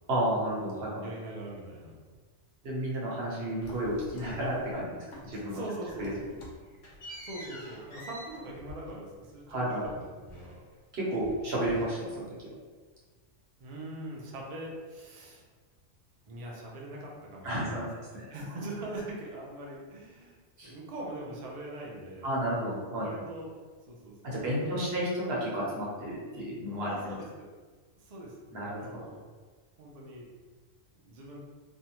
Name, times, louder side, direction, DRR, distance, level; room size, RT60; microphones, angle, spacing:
voice 1, 0.1-1.0 2.6-5.0 5.2-5.6 6.0-6.1 9.5-9.8 10.9-12.5 17.4-18.2 20.6-20.7 22.2-23.1 24.2-27.0 28.5-29.0, right 1 dB, 60° right, -5 dB, 1.0 m, -32 dB
voice 2, 0.8-1.9 5.4-6.3 6.7-6.9 7.2-10.6 13.6-15.4 16.3-17.9 18.1-20.4 20.6-22.3 23.0-23.5 23.9-24.9 26.8-27.5 28.0-28.5 28.8-29.2 29.8-30.2 31.0-31.4, right 1 dB, 80° right, -3 dB, 0.3 m, -42 dB
sound 1, 3.6-4.8 5.1-5.6 5.9-10.8 11.1-12.4, equal, 75° left, 1.0 m, -48 dB
2.5 x 2.2 x 2.9 m, 1.4 s
omnidirectional pair, 1.3 m